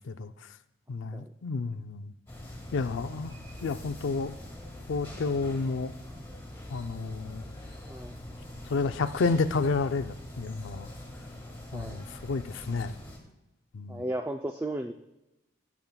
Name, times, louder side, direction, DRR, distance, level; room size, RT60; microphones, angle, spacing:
voice 1, 0.9-2.1 2.7-3.3 3.6-4.3 4.9-5.9 6.7-7.4 8.7-10.9 11.7-12.9 13.7-14.0, left 4 dB, 85° left, 11 dB, 0.4 m, -30 dB
sound 1, 2.3-13.2, left 1 dB, 10° left, 2.0 m, -43 dB
voice 2, 11.7-12.0 13.9-14.9, right 1 dB, 10° right, 5 dB, 0.3 m, -34 dB
18.5 x 7.2 x 2.2 m, 0.94 s
head